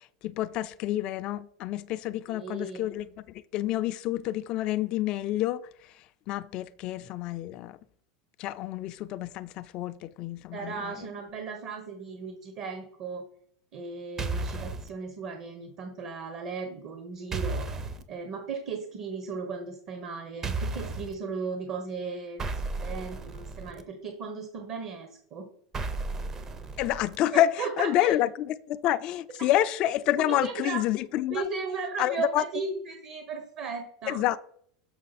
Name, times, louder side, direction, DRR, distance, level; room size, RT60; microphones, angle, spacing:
voice 1, 0.2-3.0 3.5-5.6 6.3-7.8 8.4-10.9 26.8-31.4 32.0-32.4 34.1-34.4, left 13 dB, 45° left, 0.3 m, -28 dB
voice 2, 2.3-2.9 10.5-13.2 13.7-25.5 27.3-28.2 30.2-30.8 31.3-34.2, right 4 dB, 50° right, 1.0 m, -36 dB
sound 1, 14.2-14.9 17.3-18.0 20.4-21.1 22.4-23.8 25.7-27.2, right 3 dB, 25° right, 0.6 m, -33 dB
6.4 x 6.0 x 4.1 m
supercardioid pair, 130°, 2 cm